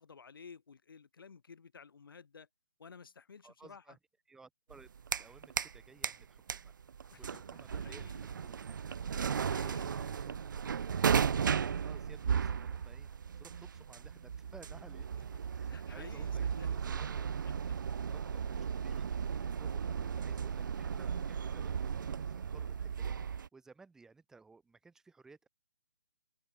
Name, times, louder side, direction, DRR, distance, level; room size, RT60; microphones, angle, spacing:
voice 1, 0.0-2.5 2.8-4.0 7.1-7.2 7.5-8.1 9.4-9.9 15.7-16.8, left 5 dB, 65° left, 5.6 m, -54 dB
voice 2, 3.4-4.0 4.3-4.9 5.2-6.7 7.2-8.1 8.4-8.8 9.5-10.6 11.8-13.1 13.4-15.1 15.5-16.4 16.7-17.2 18.1-25.5, right 4 dB, 5° right, 2.0 m, -58 dB
sound 1, 4.7-5.8 6.0-23.5, right 7 dB, 55° right, 1.2 m, -35 dB
hypercardioid pair, 160°, 12 cm